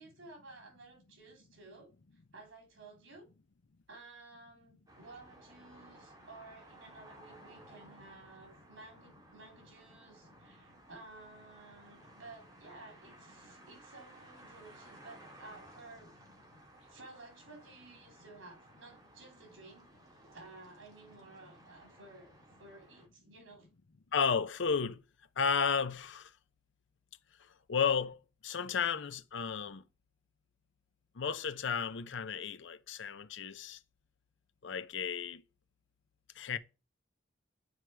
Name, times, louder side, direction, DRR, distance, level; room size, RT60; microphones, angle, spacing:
voice 1, 0.0-1.9 2.3-3.3 3.9-16.1 16.8-19.9 20.3-23.7, right 3 dB, 85° right, 3.6 m, -54 dB
sound 1, 4.9-23.1, right 1 dB, 20° right, 2.3 m, -58 dB
voice 2, 24.1-25.0 25.4-26.3 27.7-29.8 31.1-33.8 34.6-35.4 36.3-36.6, left 6 dB, 70° left, 0.6 m, -33 dB
9.7 x 4.7 x 4.5 m
head